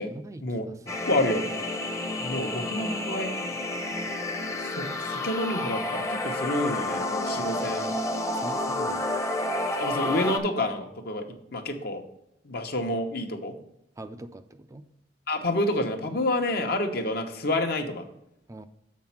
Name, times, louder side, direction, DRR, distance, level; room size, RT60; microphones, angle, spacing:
voice 1, 0.1-1.0 8.3-9.1 14.0-14.9 18.5-18.7, right 1 dB, 20° right, 9 dB, 0.4 m, -43 dB
sound 1, 0.9-10.4, left 1 dB, 15° left, 0.8 m, -30 dB
voice 2, 1.1-1.5 2.2-3.3 4.7-8.0 9.8-12.0 12.4-13.5 15.3-18.0, left 1 dB, 60° left, 4 dB, 1.1 m, -28 dB
7.3 x 4.2 x 5.8 m, 0.80 s
head